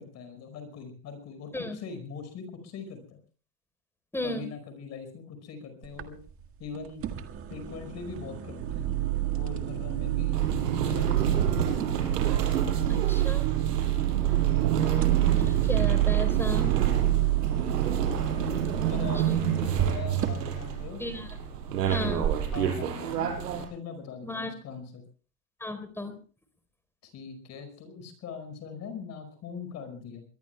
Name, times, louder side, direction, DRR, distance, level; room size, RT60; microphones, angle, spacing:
voice 1, 0.0-3.2 4.2-6.2 6.6-7.1 7.5-9.0 9.3-10.5 10.8-11.4 18.9-21.0 21.8-25.0 27.0-30.2, left 5 dB, 35° left, 9 dB, 5.2 m, -41 dB
voice 2, 4.1-4.5 12.9-13.7 14.7-16.7 18.8-19.7 21.0-21.3 21.9-22.2 24.2-24.5 25.6-26.2, left 1 dB, 5° left, 10 dB, 3.9 m, -35 dB
sound 1, 5.8-22.7, right 8 dB, 30° right, 1.6 m, -39 dB
sound 2, 8.6-18.4, right 16 dB, 65° right, 2.5 m, -27 dB
sound 3, 10.3-23.6, right 8 dB, 85° right, 5.4 m, -29 dB
24.0 x 22.0 x 2.2 m, 0.39 s
supercardioid pair, 135°, 47 cm